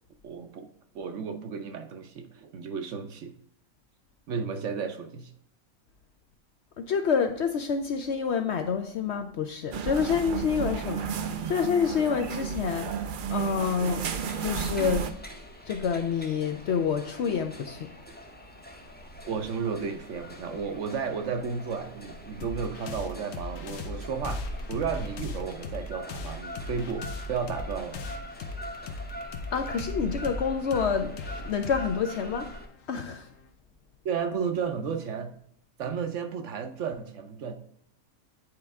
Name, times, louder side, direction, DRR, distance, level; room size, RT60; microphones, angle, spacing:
voice 1, 0.2-0.7 0.9-3.3 4.3-5.3 19.3-28.0 34.0-35.4 35.8-37.6, right 6 dB, 65° right, 7 dB, 0.9 m, -33 dB
voice 2, 6.8-11.1 11.5-12.9 13.3-14.0 14.4-15.1 15.7-17.9 29.5-31.1 31.4-32.5 32.9-33.3, left 6 dB, 65° left, 6 dB, 0.7 m, -27 dB
sound 1, 9.7-15.1, right 7 dB, 80° right, 0.4 m, -32 dB
sound 2, 14.0-32.7, equal, 10° left, 0.5 m, -42 dB
sound 3, 22.4-33.5, left 3 dB, 85° left, 1.3 m, -40 dB
8.6 x 4.4 x 3.5 m, 0.71 s
omnidirectional pair, 1.5 m